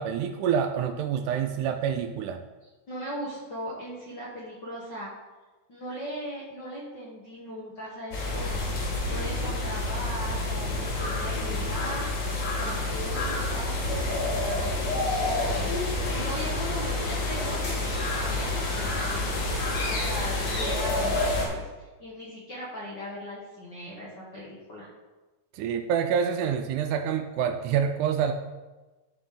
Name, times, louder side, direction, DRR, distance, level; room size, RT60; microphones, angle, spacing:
voice 1, 0.0-2.4 25.5-28.3, right 8 dB, 80° right, 6 dB, 1.9 m, -27 dB
voice 2, 2.9-5.1 5.7-8.6 9.1-12.1 12.5-21.5 21.8-24.9, equal, 50° left, -5 dB, 1.3 m, -38 dB
sound 1, 8.1-21.5, left 2 dB, 70° left, 3.6 m, -28 dB
12.0 x 4.8 x 3.8 m, 1.2 s
omnidirectional pair, 3.8 m